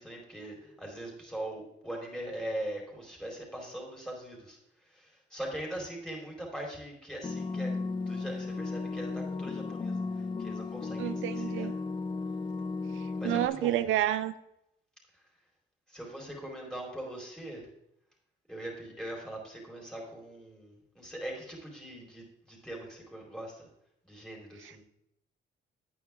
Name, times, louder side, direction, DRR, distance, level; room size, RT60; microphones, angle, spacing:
voice 1, 0.0-11.7 13.2-13.8 15.1-15.2 15.9-17.7 18.5-23.7 24.0-24.8, right 1 dB, 5° left, -2 dB, 4.4 m, -41 dB
sound 1, 7.2-13.5, left 3 dB, 25° left, 0.6 m, -35 dB
voice 2, 11.0-11.7 12.9-14.3 24.6-24.8, right 13 dB, 85° right, 13 dB, 0.5 m, -30 dB
9.6 x 9.2 x 3.7 m, 0.78 s
cardioid pair, 90°, 20 cm